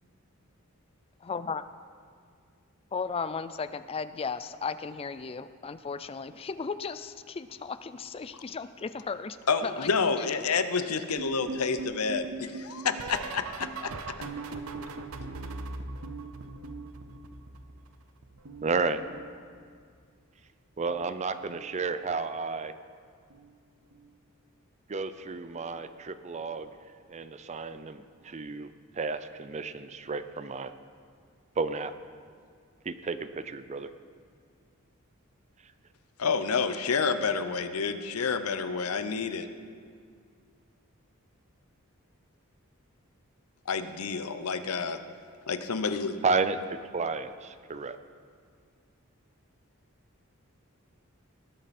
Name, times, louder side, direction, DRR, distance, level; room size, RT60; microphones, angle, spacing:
voice 1, 1.2-1.6 2.9-9.4 9.6-9.9 10.2-10.4, left 5 dB, 25° left, 13 dB, 0.4 m, -35 dB
voice 2, 9.5-13.9 14.2-14.3 36.2-39.5 43.7-45.0 45.5-46.2, left 5 dB, 85° left, 10 dB, 0.7 m, -29 dB
sound 1, 11.2-17.9 18.2-19.8 20.8-21.2 21.4-21.8 23.3-23.6 23.9-24.2 25.7-25.8, right 3 dB, 75° right, 0.8 m, -40 dB
voice 3, 18.6-19.0 20.8-22.7 24.9-26.7 27.1-30.7 31.6-31.9 32.9-33.9 46.2-48.0, right 4 dB, 30° right, 12 dB, 0.5 m, -32 dB
19.0 x 8.9 x 4.2 m, 2.1 s
head